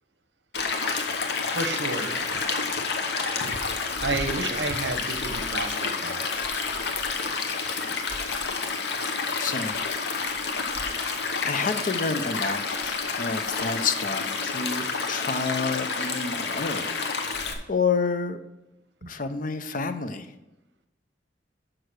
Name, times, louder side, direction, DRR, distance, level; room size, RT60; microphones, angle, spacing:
Stream, 0.5-17.5, left 4 dB, 70° left, 1.0 m, -29 dB
voice 1, 1.5-2.2 4.0-6.3 19.0-19.1, right 3 dB, 75° right, 8 dB, 0.9 m, -31 dB
voice 2, 9.4-9.8 11.4-17.0 17.3-18.4 19.1-20.3, left 4 dB, 50° left, 10 dB, 0.6 m, -29 dB
6.6 x 6.0 x 6.3 m, 0.93 s
head